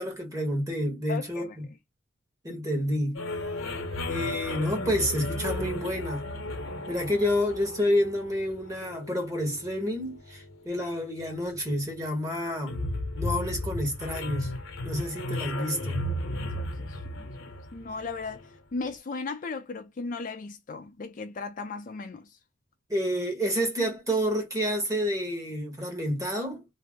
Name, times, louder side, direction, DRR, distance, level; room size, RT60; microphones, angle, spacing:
voice 1, 0.0-1.6 2.4-3.2 4.1-6.2 6.9-12.8 13.2-14.5 14.8-16.0 22.9-26.6, equal, 15° right, 1.0 m, -29 dB
voice 2, 1.1-1.6 16.3-17.3 17.7-22.4, left 4 dB, 40° left, 0.4 m, -37 dB
sound 1, 3.1-18.6, left 1 dB, 75° left, 0.8 m, -35 dB
2.6 x 2.0 x 3.4 m
head